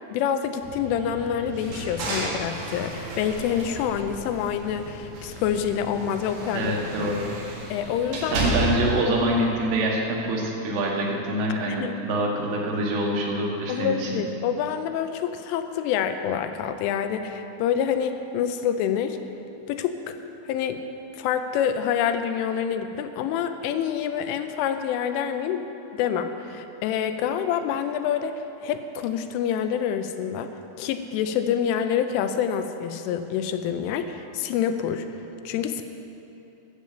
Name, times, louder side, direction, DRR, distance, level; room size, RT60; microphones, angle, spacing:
voice 1, 0.1-6.7 7.0-7.1 7.7-8.5 11.7-12.0 13.7-19.2 19.7-20.2 20.5-20.8 21.1-30.5 30.8-35.1 35.5-35.8, left 8 dB, 85° left, 8 dB, 3.2 m, -27 dB
sound 1, 0.6-9.5, right 1 dB, 35° right, 0.6 m, -42 dB
sound 2, 1.5-4.7 5.1-9.0, right 1 dB, 60° right, 3.5 m, -32 dB
voice 2, 6.5-7.3 8.3-14.1, right 1 dB, 90° right, -2 dB, 4.1 m, -25 dB
11.5 x 7.2 x 7.6 m, 2.9 s
omnidirectional pair, 5.5 m